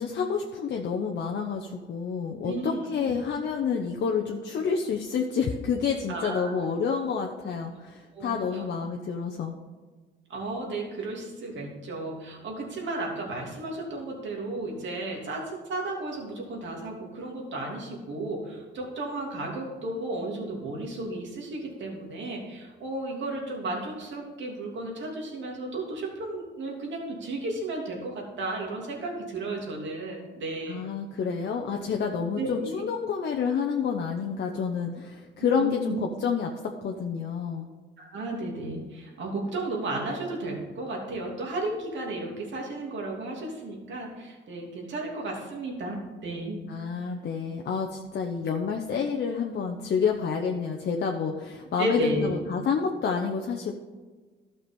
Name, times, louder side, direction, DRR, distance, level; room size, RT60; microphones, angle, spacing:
voice 1, 0.0-9.6 30.7-37.7 46.7-53.7, left 6 dB, 60° left, 2 dB, 0.9 m, -29 dB
voice 2, 2.4-3.1 6.1-6.5 8.1-8.6 10.3-30.8 32.4-32.7 35.4-36.0 38.0-46.6 51.8-52.3, right 2 dB, 70° right, -1 dB, 2.9 m, -33 dB
12.0 x 6.0 x 5.3 m, 1.4 s
cardioid pair, 90°, 20 cm